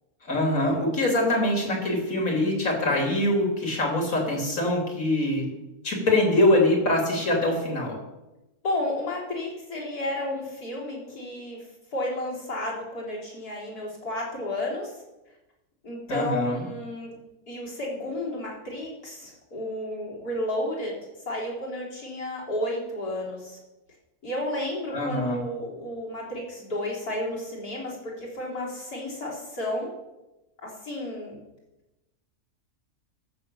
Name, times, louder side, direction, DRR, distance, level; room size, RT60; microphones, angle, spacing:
voice 1, 0.2-5.6 5.8-8.0 16.1-16.7 24.9-25.4, left 1 dB, 60° left, 0 dB, 3.4 m, -24 dB
voice 2, 8.6-11.6 11.9-14.9 15.8-17.2 17.5-21.0 21.3-23.6 24.2-29.9 30.6-31.4, left 1 dB, 80° left, -4 dB, 4.3 m, -32 dB
14.0 x 6.8 x 6.9 m, 0.99 s
omnidirectional pair, 1.6 m